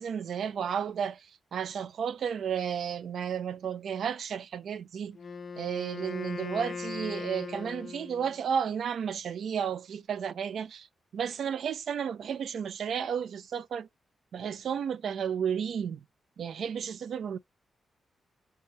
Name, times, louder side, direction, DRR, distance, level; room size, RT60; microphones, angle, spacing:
voice 1, 0.0-5.2 5.6-10.9 11.1-13.9 14.3-16.0 16.4-17.4, right 7 dB, 70° right, 0.4 m, -32 dB
Wind instrument woodwind instrument, 5.1-8.4, left 5 dB, 45° left, 0.4 m, -39 dB
2.8 x 2.2 x 2.8 m
wide cardioid pair, 140°, 0 cm